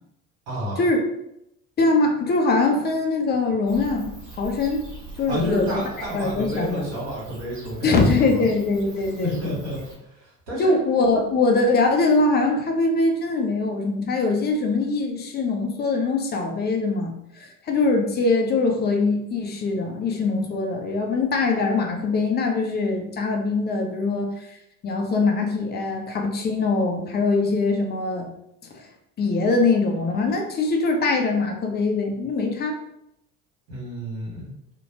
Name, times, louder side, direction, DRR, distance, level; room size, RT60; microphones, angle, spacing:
voice 1, 0.5-0.8 5.3-8.4 9.2-10.7 33.7-34.4, equal, 60° right, -7 dB, 1.4 m, -30 dB
voice 2, 1.8-4.8 5.2-5.8 6.1-6.8 7.8-9.6 10.6-24.6 24.8-28.3 28.7-28.8 29.2-32.8, left 3 dB, 25° left, 2 dB, 0.4 m, -22 dB
Bird / Cricket, 3.7-9.9, right 2 dB, 40° right, 1.3 m, -42 dB
2.6 x 2.1 x 2.8 m, 0.80 s
hypercardioid pair, 65°, 44 cm